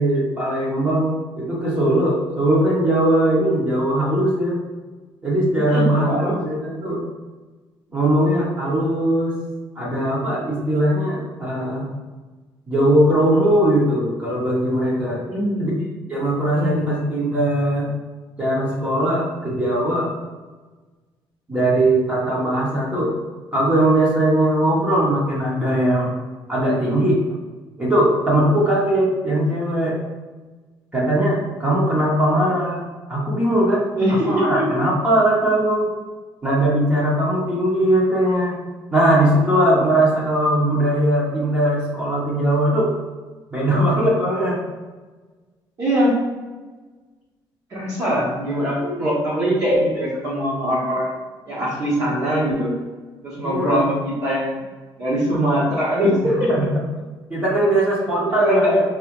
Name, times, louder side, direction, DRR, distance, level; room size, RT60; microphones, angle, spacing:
voice 1, 0.0-4.6 5.2-7.0 7.9-9.4 9.8-11.9 12.7-15.2 15.6-15.7 16.1-17.9 18.4-20.1 21.5-23.1 23.5-26.1 26.5-27.2 27.8-30.0 30.9-33.9 34.2-35.9 36.4-38.6 38.9-42.9 43.5-44.6 48.8-49.1 53.4-53.9 56.5-56.6 57.3-58.8, right 1 dB, 15° right, -5 dB, 0.9 m, -20 dB
voice 2, 5.5-6.4 15.2-15.7 16.5-17.0 33.9-34.6 45.8-46.2 47.7-51.1 51.4-52.7 53.2-54.6 55.0-56.5 58.4-58.8, equal, 40° right, -7 dB, 1.2 m, -22 dB
4.9 x 3.0 x 3.0 m, 1.3 s
cardioid pair, 180°, 9 cm